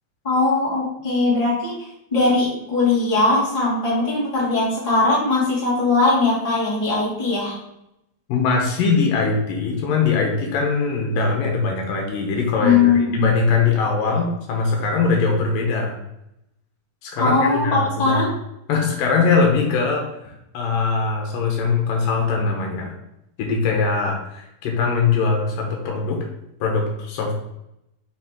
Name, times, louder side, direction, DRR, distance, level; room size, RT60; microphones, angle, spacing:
voice 1, 0.2-1.7 2.1-7.6 12.6-13.3 17.2-18.3, left 3 dB, 15° left, -8 dB, 2.0 m, -20 dB
voice 2, 8.3-16.0 17.0-18.2 18.7-20.0 20.5-22.9 23.4-26.2 26.6-27.3, left 4 dB, 75° left, 0 dB, 2.6 m, -21 dB
5.9 x 5.7 x 3.7 m, 0.83 s
omnidirectional pair, 4.1 m